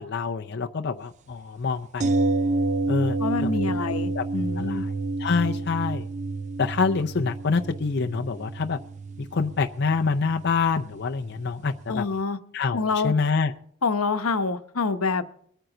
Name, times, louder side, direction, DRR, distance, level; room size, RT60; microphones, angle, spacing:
voice 1, 0.0-2.1 2.9-3.2 3.4-4.2 4.6-4.9 5.2-6.1 6.6-8.8 9.2-12.0 12.5-13.5, left 4 dB, 50° left, 4 dB, 0.6 m, -26 dB
sound 1, 2.0-11.9 12.2-12.3, right 2 dB, 35° right, 0.4 m, -29 dB
voice 2, 3.2-4.8 11.9-12.4 12.7-13.1 13.8-15.2, left 4 dB, 85° left, 9 dB, 0.9 m, -26 dB
22.5 x 9.1 x 3.9 m, 0.63 s
head